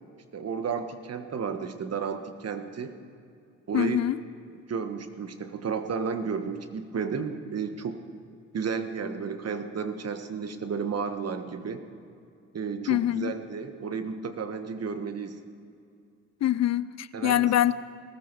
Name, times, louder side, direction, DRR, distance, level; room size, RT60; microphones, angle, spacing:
voice 1, 0.3-3.0 3.7-4.0 4.7-8.0 8.5-11.8 12.5-15.4 17.1-17.4, right 6 dB, 50° right, 8 dB, 1.4 m, -32 dB
voice 2, 3.7-4.2 12.9-13.3 16.4-17.7, left 12 dB, 55° left, 17 dB, 0.5 m, -24 dB
18.5 x 14.0 x 4.7 m, 2.4 s
supercardioid pair, 60°, 33 cm